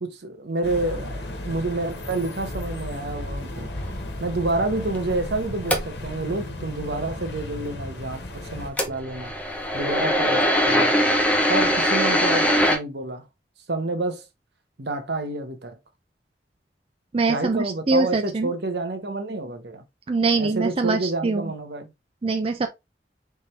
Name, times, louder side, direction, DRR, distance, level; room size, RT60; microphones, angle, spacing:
voice 1, 0.0-3.7 4.2-9.3 9.7-11.0 11.5-13.2 13.7-14.2 14.8-15.8 17.3-19.8 20.4-21.9, right 2 dB, 75° right, 1.0 m, -29 dB
sound 1, 0.6-8.7, left 1 dB, 85° left, 1.2 m, -34 dB
sound 2, 3.8-6.3 8.6-12.8, equal, 10° left, 0.7 m, -22 dB
voice 2, 17.1-18.5 20.1-21.5 22.2-22.7, right 3 dB, 35° right, 0.4 m, -23 dB
4.4 x 3.5 x 3.2 m
head